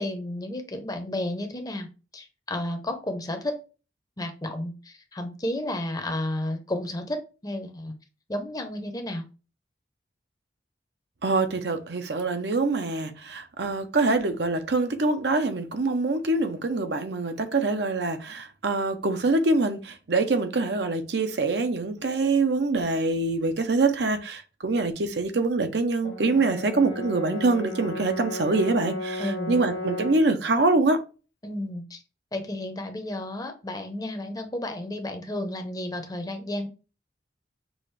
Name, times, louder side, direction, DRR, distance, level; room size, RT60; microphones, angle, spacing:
voice 1, 0.0-3.6 4.2-8.0 8.3-9.2 29.2-29.6 31.4-32.0 32.3-36.7, left 1 dB, 20° left, 0.7 m, -32 dB
voice 2, 11.2-31.0, right 3 dB, 65° right, 0.7 m, -25 dB
Brass instrument, 26.0-30.3, left 1 dB, 80° left, 0.8 m, -34 dB
6.1 x 2.5 x 3.2 m
head